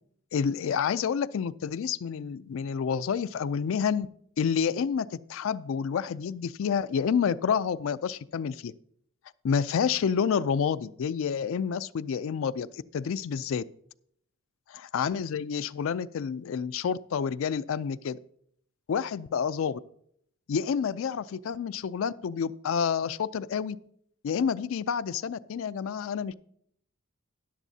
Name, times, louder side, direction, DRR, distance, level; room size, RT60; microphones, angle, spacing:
voice 1, 0.3-4.1 4.4-8.7 9.4-13.6 14.7-18.2 18.9-19.8 20.5-23.8 24.2-26.3, left 7 dB, 65° left, 14 dB, 0.3 m, -29 dB
13.5 x 9.8 x 2.7 m, 0.69 s
head